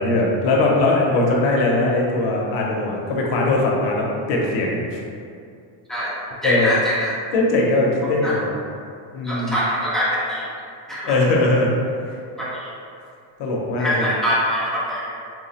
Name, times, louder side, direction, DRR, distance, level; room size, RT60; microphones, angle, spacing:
voice 1, 0.0-5.0 6.4-6.7 7.3-8.5 9.1-9.6 11.1-11.7 13.4-14.1, left 2 dB, 55° left, -2 dB, 0.7 m, -20 dB
voice 2, 6.4-7.1 8.2-8.4 9.2-10.4 10.9-11.2 12.4-12.7 13.8-15.1, equal, ahead, -10 dB, 0.5 m, -23 dB
4.4 x 2.1 x 2.8 m, 2.4 s
cardioid pair, 155°, 50 cm